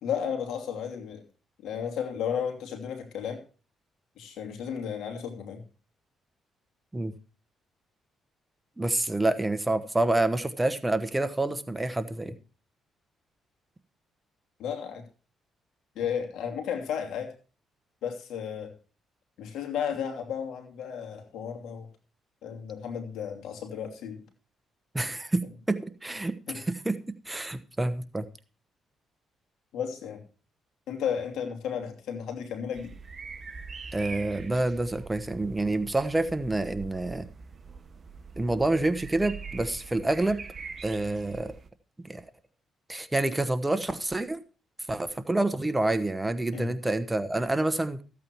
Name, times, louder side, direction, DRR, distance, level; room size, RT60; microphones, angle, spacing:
voice 1, 0.0-1.2 1.6-3.4 4.2-5.6 14.6-15.0 15.9-17.3 18.0-18.7 19.4-21.9 22.4-24.2 26.5-26.6 29.7-30.2 30.9-32.9 46.5-46.7, left 8 dB, 80° left, 4 dB, 2.8 m, -33 dB
voice 2, 8.8-12.3 24.9-25.4 25.7-27.0 27.3-28.3 33.9-37.3 38.4-40.4 40.8-41.5 42.0-42.2 42.9-44.4 44.9-48.0, right 2 dB, 15° right, 10 dB, 1.1 m, -28 dB
sound 1, 32.7-41.7, right 5 dB, 35° right, 1.2 m, -43 dB
14.5 x 8.6 x 4.6 m, 0.36 s
cardioid pair, 90°, 0 cm